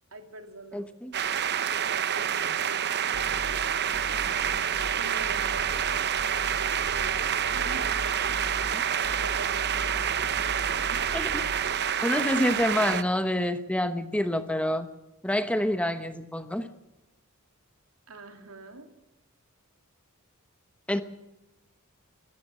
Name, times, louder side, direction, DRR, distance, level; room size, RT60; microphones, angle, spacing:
voice 1, 0.1-0.9 2.0-3.6 4.9-8.4 9.1-11.0 18.1-18.9, right 2 dB, 75° right, 6 dB, 3.1 m, -45 dB
voice 2, 0.7-1.1 8.7-8.8 11.1-11.4 12.0-14.9 15.2-16.7 20.9-21.0, left 1 dB, 5° left, 10 dB, 1.0 m, -27 dB
sound 1, 1.1-13.0, right 8 dB, 50° right, 0.9 m, -28 dB
sound 2, 3.1-11.6, equal, 60° left, 5.9 m, -41 dB
25.0 x 13.5 x 7.6 m, 0.95 s
head